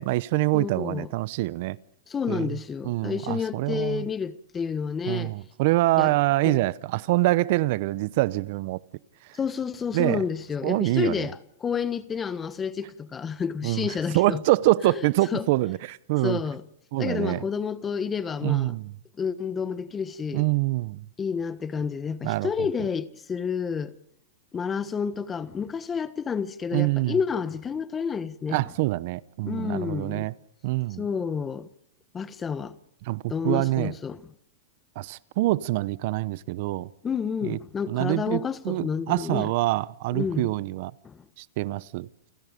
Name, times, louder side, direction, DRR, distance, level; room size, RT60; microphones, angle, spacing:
voice 1, 0.0-1.8 2.3-2.6 2.8-4.1 5.1-8.8 9.3-9.4 9.9-10.2 10.6-11.3 13.6-16.4 16.9-17.4 18.4-18.9 20.3-21.0 22.2-22.5 26.7-27.2 28.5-30.3 30.6-31.0 33.1-33.9 35.0-36.9 37.4-37.6 37.9-40.9 41.4-42.1, right 19 dB, 55° right, 0.7 m, -25 dB
voice 2, 0.5-1.1 2.1-5.3 6.0-6.1 6.4-6.7 9.3-14.4 14.8-15.0 15.3-15.5 16.2-16.6 17.0-18.8 19.2-20.5 21.2-23.9 24.5-28.6 29.4-30.3 31.0-31.7 32.1-32.7 33.3-34.2 37.0-39.5 40.1-40.5 41.0-41.2, left 6 dB, 20° left, 1.3 m, -30 dB
29.5 x 18.0 x 5.2 m
hypercardioid pair, 125°, 0 cm